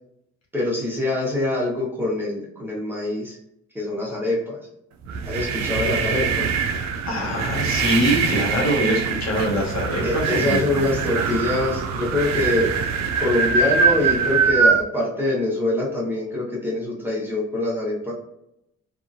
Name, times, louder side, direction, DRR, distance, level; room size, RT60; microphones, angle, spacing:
voice 1, 0.5-3.4 3.7-4.6 5.2-6.5 10.0-12.7 13.2-18.1, left 2 dB, 5° right, -5 dB, 1.0 m, -24 dB
sound 1, 5.0-14.8, right 5 dB, 65° right, 0.4 m, -23 dB
voice 2, 7.0-10.6 11.1-11.2, equal, 60° left, -2 dB, 1.1 m, -23 dB
2.7 x 2.5 x 2.5 m, 0.79 s
cardioid pair, 90°, 30 cm